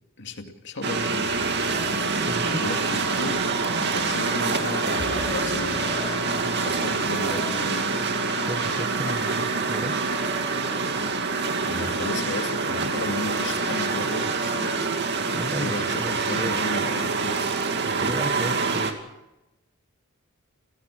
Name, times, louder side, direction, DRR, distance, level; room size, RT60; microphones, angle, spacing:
voice 1, 0.2-1.3 2.6-5.8 6.6-8.0 11.6-14.8 15.6-17.4, left 2 dB, 60° left, 5 dB, 2.3 m, -34 dB
sound 1, 0.8-18.9, right 4 dB, 55° right, 2.4 m, -26 dB
sound 2, 1.3-12.1, left 2 dB, 85° left, 4.0 m, -41 dB
Laughter, 1.3-11.3, left 3 dB, 40° left, 4.5 m, -45 dB
voice 2, 2.3-2.6 8.5-10.0 15.3-16.6 17.8-18.9, right 1 dB, 20° right, 8 dB, 1.5 m, -33 dB
29.5 x 16.5 x 6.2 m, 0.96 s
head